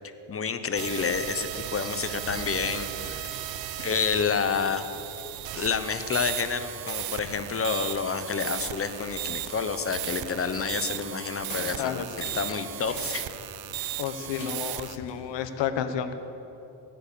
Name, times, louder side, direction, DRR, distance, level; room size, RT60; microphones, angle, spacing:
voice 1, 0.3-3.3 3.8-4.8 5.5-13.3, left 6 dB, 30° left, 10 dB, 1.0 m, -29 dB
sound 1, 0.8-15.0, right 13 dB, 55° right, 0.8 m, -36 dB
sound 2, 1.3-15.4, left 2 dB, 90° left, 3.8 m, -47 dB
voice 2, 11.8-12.3 14.0-16.1, left 8 dB, 70° left, 10 dB, 1.1 m, -31 dB
17.5 x 9.8 x 6.9 m, 2.9 s
cardioid pair, 105°, 45 cm